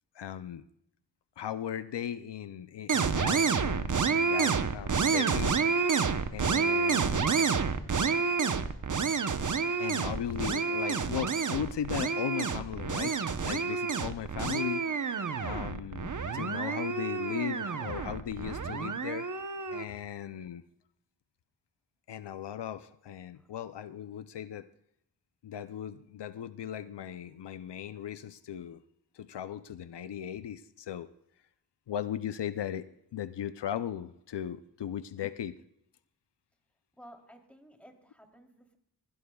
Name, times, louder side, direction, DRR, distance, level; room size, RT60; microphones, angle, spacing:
voice 1, 0.2-0.6 1.4-5.6 6.3-7.3 9.8-15.2 15.4-19.3 19.7-20.6 22.1-24.7 25.4-28.8 29.1-31.1 31.9-35.6, left 9 dB, 85° left, 13 dB, 0.6 m, -37 dB
sound 1, 2.9-19.8, right 5 dB, 50° right, 0.9 m, -29 dB
voice 2, 37.0-38.8, equal, 5° left, 3 dB, 3.1 m, -54 dB
22.0 x 16.0 x 2.3 m, 0.75 s
cardioid pair, 45°, 40 cm